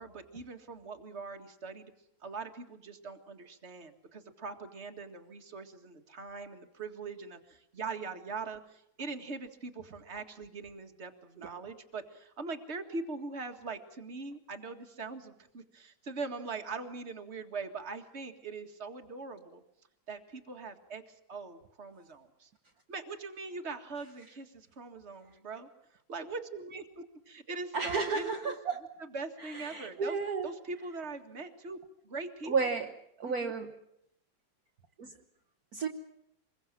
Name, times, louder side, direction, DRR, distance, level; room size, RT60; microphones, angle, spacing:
voice 1, 0.0-1.9 2.2-19.6 20.1-22.5 22.9-28.5 29.1-30.2 30.4-31.8 32.0-32.5 33.3-33.5, right 4 dB, 35° right, 6 dB, 2.1 m, -42 dB
voice 2, 27.7-28.8 29.4-30.5 32.5-32.9 33.2-33.8 35.0-35.1 35.7-35.9, right 4 dB, 55° right, 2 dB, 1.7 m, -32 dB
26.0 x 22.0 x 7.5 m, 0.76 s
omnidirectional pair, 2.1 m